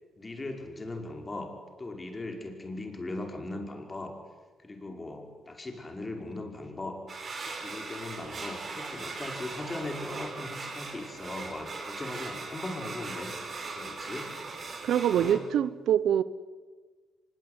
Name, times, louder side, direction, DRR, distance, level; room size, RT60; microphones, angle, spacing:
voice 1, 0.2-4.2 4.6-7.0 7.4-13.3 13.6-14.4 15.1-15.4, left 2 dB, 25° left, 3 dB, 5.5 m, -39 dB
sound 1, 7.1-15.3, right 3 dB, 45° right, 6.1 m, -39 dB
voice 2, 14.8-16.2, right 10 dB, 75° right, 16 dB, 0.9 m, -25 dB
24.5 x 22.0 x 9.7 m, 1.4 s
cardioid pair, 90°, 0 cm